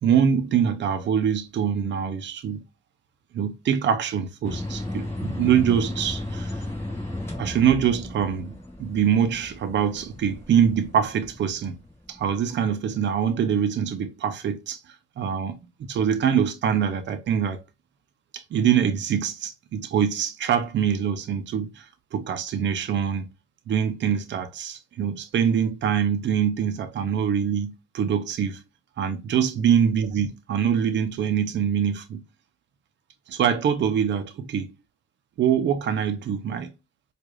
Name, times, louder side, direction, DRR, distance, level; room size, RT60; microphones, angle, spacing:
voice 1, 0.0-2.6 3.3-6.6 7.4-11.8 12.1-14.8 15.2-17.6 18.3-21.9 22.1-23.3 23.7-28.6 29.0-32.2 33.3-34.7 35.4-36.7, right 8 dB, 65° right, 0.6 m, -24 dB
sound 1, 4.4-12.5, left 1 dB, 10° left, 1.6 m, -35 dB
4.6 x 2.5 x 2.4 m
cardioid pair, 95°, 20 cm